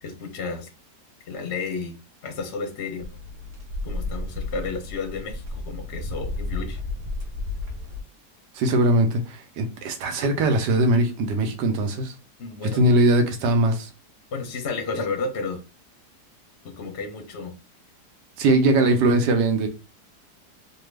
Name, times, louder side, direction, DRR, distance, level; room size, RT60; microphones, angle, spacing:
voice 1, 0.0-0.7 1.3-1.9 2.2-3.1 3.8-6.8 12.4-13.0 14.3-15.6 16.6-17.5, left 4 dB, 60° left, 0.7 m, -32 dB
sound 1, 3.0-8.0, left 2 dB, 55° right, 1.2 m, -32 dB
voice 2, 8.5-12.1 12.8-13.9 18.4-19.7, right 2 dB, 85° right, 1.3 m, -20 dB
3.3 x 2.2 x 3.2 m
omnidirectional pair, 1.8 m